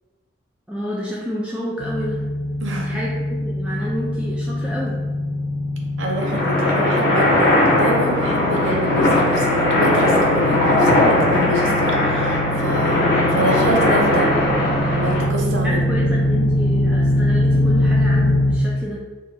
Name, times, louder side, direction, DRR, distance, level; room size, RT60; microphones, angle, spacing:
voice 1, 0.7-2.2 2.7-4.9 14.2-14.5 15.5-19.0, equal, 5° right, -6 dB, 0.3 m, -29 dB
Propeller aircraft flyover, 1.8-18.5, left 1 dB, 85° left, 0.5 m, -23 dB
voice 2, 2.6-3.0 6.0-14.3 14.9-15.8 16.2-16.3, right 1 dB, 75° right, 0 dB, 0.6 m, -26 dB
sound 1, 6.1-15.2, left 1 dB, 55° left, 0.9 m, -19 dB
2.7 x 2.3 x 3.8 m, 1.3 s
head